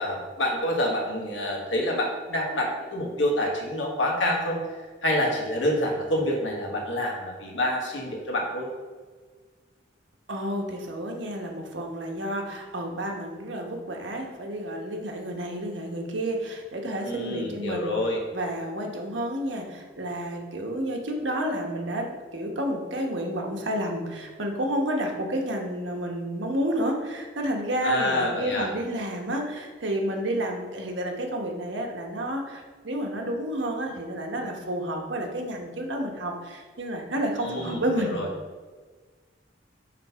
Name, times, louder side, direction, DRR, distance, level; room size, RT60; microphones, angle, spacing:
voice 1, 0.0-4.6 5.0-8.7 17.0-18.2 27.8-28.7 37.4-38.3, left 1 dB, 85° left, -1 dB, 1.5 m, -27 dB
voice 2, 10.3-17.9 18.3-38.2, right 1 dB, 85° right, 1 dB, 1.1 m, -30 dB
5.2 x 3.9 x 5.6 m, 1.5 s
head